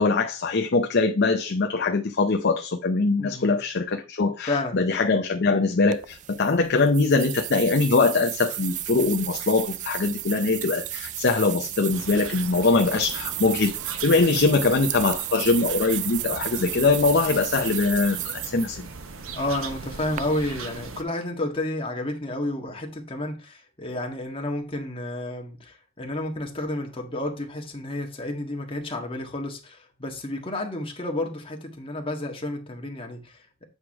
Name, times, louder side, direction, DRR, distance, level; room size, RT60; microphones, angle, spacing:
voice 1, 0.0-18.9, left 3 dB, 55° left, 0.7 m, -22 dB
voice 2, 3.2-3.6 4.5-4.8 14.3-14.4 19.3-33.6, left 1 dB, 25° left, 1.6 m, -31 dB
sound 1, 5.9-20.2, right 13 dB, 40° right, 0.3 m, -34 dB
sound 2, 11.9-21.0, right 4 dB, 90° right, 1.0 m, -40 dB
8.1 x 4.8 x 3.5 m
head